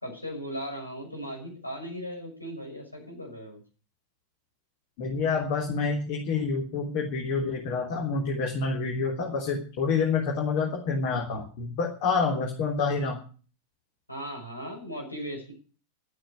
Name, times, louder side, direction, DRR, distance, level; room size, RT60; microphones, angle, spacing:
voice 1, 0.0-3.6 14.1-15.5, equal, 85° left, 2 dB, 5.9 m, -37 dB
voice 2, 5.0-13.2, left 4 dB, 50° left, 0 dB, 3.5 m, -28 dB
12.5 x 8.9 x 9.7 m, 0.39 s
figure-of-eight pair, 90°, 0 cm